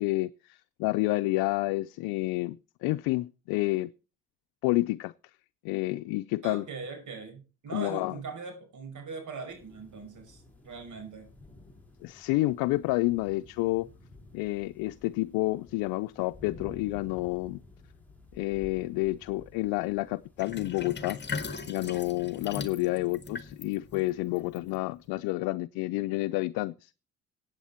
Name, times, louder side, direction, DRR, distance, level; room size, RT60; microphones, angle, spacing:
voice 1, 0.0-3.9 4.6-5.1 5.6-6.6 7.7-8.2 12.0-13.9 14.3-17.6 18.3-21.2 21.6-26.9, left 20 dB, 85° left, 0.5 m, -29 dB
voice 2, 6.4-11.3, right 4 dB, 55° right, 5.6 m, -41 dB
sound 1, 9.5-23.9, left 2 dB, 5° left, 4.1 m, -53 dB
Sink (filling or washing), 20.4-25.1, left 4 dB, 30° left, 1.7 m, -40 dB
15.0 x 8.9 x 4.3 m
supercardioid pair, 75°, 36 cm